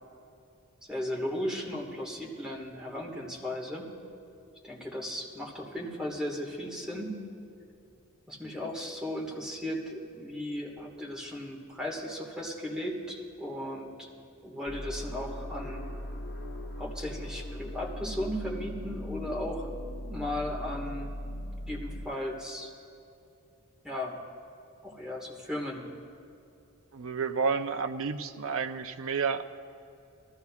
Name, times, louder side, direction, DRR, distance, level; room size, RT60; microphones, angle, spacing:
voice 1, 0.9-3.9 4.6-7.2 8.3-14.1 14.4-15.9 16.8-19.7 20.0-21.1 21.7-22.7 23.8-24.2 24.8-25.9, left 1 dB, 5° right, -3 dB, 1.6 m, -36 dB
sound 1, 14.7-22.1, equal, 50° left, 1.4 m, -39 dB
voice 2, 26.9-29.4, right 5 dB, 65° right, 8 dB, 0.5 m, -30 dB
20.0 x 14.0 x 2.4 m, 2.7 s
head